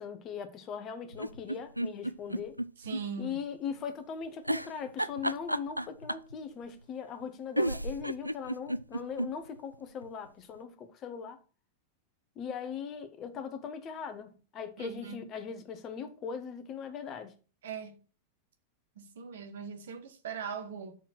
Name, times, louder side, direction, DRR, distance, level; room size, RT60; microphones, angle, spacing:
voice 1, 0.0-2.6 3.2-11.4 12.3-17.3, left 7 dB, 30° left, 1.3 m, -40 dB
sound 1, 1.1-3.0 3.4-3.5 4.5-6.3 7.2-7.3 7.6-9.3 9.7-9.8 10.0-10.1, right 1 dB, 85° right, 0.3 m, -32 dB
voice 2, 2.8-3.4 14.8-15.2 17.6-18.0 18.9-21.0, right 6 dB, 60° right, 1.4 m, -40 dB
6.5 x 4.4 x 6.0 m
figure-of-eight pair, 90°, 0 cm